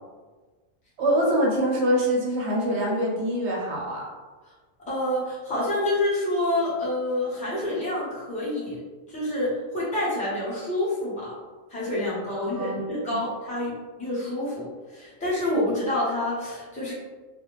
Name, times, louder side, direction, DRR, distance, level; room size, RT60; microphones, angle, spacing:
voice 1, 1.0-4.1 12.3-12.8 13.1-13.2, equal, 65° right, -2 dB, 0.8 m, -24 dB
voice 2, 4.9-8.8 9.1-11.3 11.7-13.7 14.0-14.6 14.9-16.9, left 1 dB, 5° left, -9 dB, 0.6 m, -27 dB
2.4 x 2.1 x 3.0 m, 1.4 s
omnidirectional pair, 1.4 m